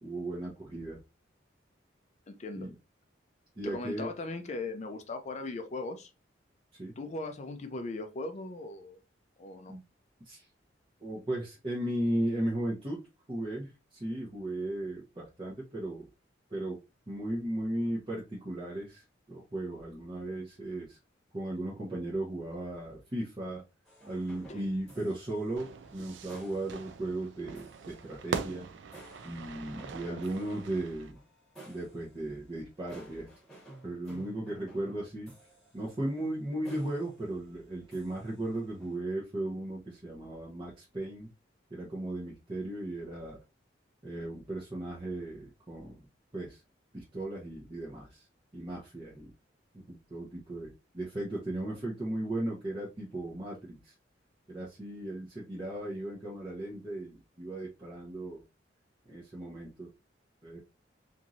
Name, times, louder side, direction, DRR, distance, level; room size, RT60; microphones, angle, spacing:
voice 1, 0.0-1.0 2.5-2.7 3.6-4.1 6.7-6.9 9.7-9.8 10.2-10.5 11.0-13.0 13.3-16.1 16.5-21.0 21.3-23.6 24.1-28.7 29.2-31.2 31.7-33.3 33.8-35.3 35.7-41.3 41.7-43.4 44.0-46.1 46.3-46.6 46.9-48.3 48.5-49.3 49.7-53.9 54.5-58.4 59.1-59.9 60.4-60.6, right 1 dB, 25° right, 0.8 m, -36 dB
voice 2, 2.3-2.7 3.6-6.1 7.0-9.0 9.4-9.8 24.5-24.7 30.1-30.2, left 2 dB, 40° left, 0.4 m, -39 dB
sound 1, 23.8-39.0, right 1 dB, 5° left, 1.1 m, -55 dB
Fire / Fireworks, 25.6-31.1, right 5 dB, 75° right, 0.4 m, -42 dB
3.0 x 2.6 x 2.5 m
head